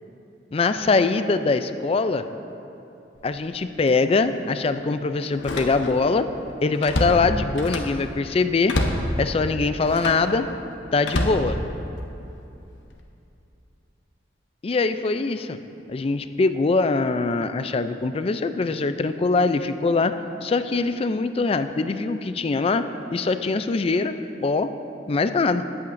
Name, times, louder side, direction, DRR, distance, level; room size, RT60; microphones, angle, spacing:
voice 1, 0.5-2.2 3.2-6.3 6.6-8.7 9.2-10.4 10.9-11.6 14.6-15.6 15.9-20.1 20.4-22.8 23.1-24.1 24.4-24.7 25.1-25.6, left 3 dB, 30° left, 10 dB, 0.4 m, -22 dB
Slam, 3.2-3.4 3.9-4.0 5.3-6.1 6.5-8.0 8.7-9.1 9.8-10.3 11.0-12.1 12.7-13.0, left 1 dB, 85° left, 1.0 m, -27 dB
19.0 x 8.6 x 2.6 m, 2.8 s
head